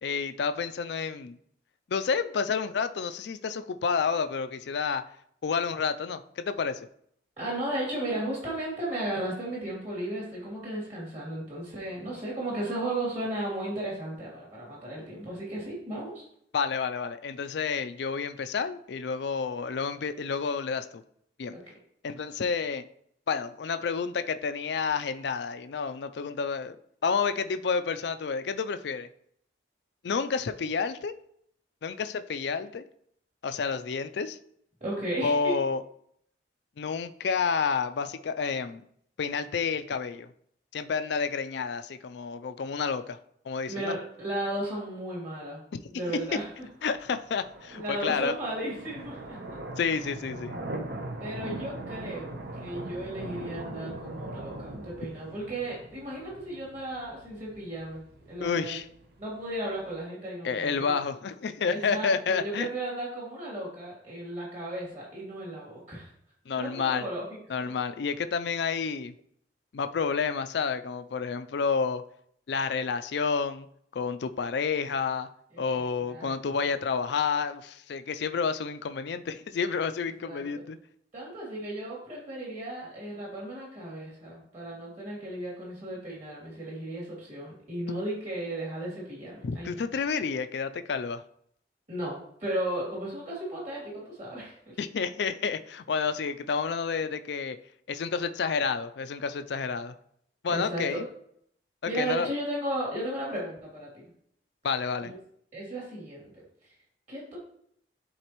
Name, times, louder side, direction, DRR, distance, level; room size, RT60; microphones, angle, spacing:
voice 1, 0.0-1.4 1.9-5.0 5.4-6.8 16.5-21.0 21.4-21.6 22.0-22.8 23.3-26.8 27.0-29.1 30.0-31.2 31.8-32.8 33.4-34.4 35.2-35.8 36.8-38.8 39.2-40.3 40.7-43.2 43.5-43.9 45.7-45.8 46.8-48.3 49.8-50.6 58.4-58.9 60.4-62.7 66.5-67.1 67.5-69.1 69.7-72.0 72.5-73.7 73.9-75.3 75.6-80.8 87.9-88.0 89.4-91.2 94.8-97.6 97.9-99.9 100.4-101.0 102.0-102.3 104.6-105.1, left 5 dB, 65° left, 10 dB, 0.4 m, -30 dB
voice 2, 7.4-16.3 21.5-21.6 34.8-35.5 43.7-45.6 45.9-46.5 47.7-49.4 51.2-58.0 58.3-58.8 59.2-61.0 61.7-66.1 66.6-67.2 67.6-67.7 75.5-75.6 76.0-76.3 80.2-80.5 81.1-89.8 91.9-94.8 100.5-101.0 101.9-104.0 105.1-105.2 105.5-106.4 107.1-107.4, right 1 dB, 40° right, -5 dB, 2.7 m, -35 dB
sound 1, 46.1-60.0, right 2 dB, 60° right, 0.9 m, -41 dB
11.0 x 4.0 x 3.0 m, 0.68 s
head